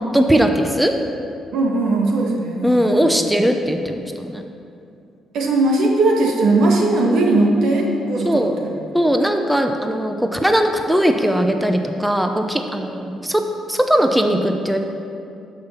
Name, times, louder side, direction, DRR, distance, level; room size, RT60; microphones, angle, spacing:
voice 1, 0.1-1.0 2.6-4.4 8.2-8.5 8.9-13.4 13.7-14.8, equal, 5° right, 5 dB, 0.7 m, -19 dB
voice 2, 1.5-3.1 5.3-8.7, right 2 dB, 75° right, 0 dB, 1.6 m, -18 dB
12.0 x 5.7 x 5.7 m, 2.6 s
cardioid pair, 90°, 0 cm